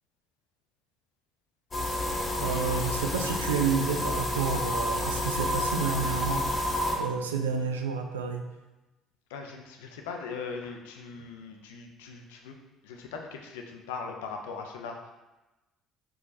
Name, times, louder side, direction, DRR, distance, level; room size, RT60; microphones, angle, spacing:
sound 1, 1.7-6.9, left 1 dB, 30° left, 0.9 m, -30 dB
voice 1, 2.4-6.5 7.0-8.4, right 5 dB, 80° right, 4 dB, 0.3 m, -30 dB
voice 2, 9.3-12.6 12.8-15.1, left 5 dB, 70° left, 3 dB, 0.4 m, -40 dB
4.7 x 3.0 x 2.6 m, 1.1 s
figure-of-eight pair, 50°, 0 cm